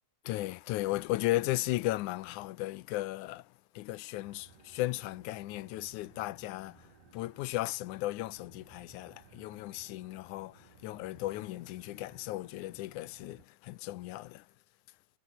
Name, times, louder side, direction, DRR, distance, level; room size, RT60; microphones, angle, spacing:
voice 1, 0.3-14.5, left 17 dB, 80° left, 2.1 m, -36 dB
sound 1, 4.2-13.5, right 6 dB, 90° right, 5.6 m, -60 dB
omnidirectional pair, 3.6 m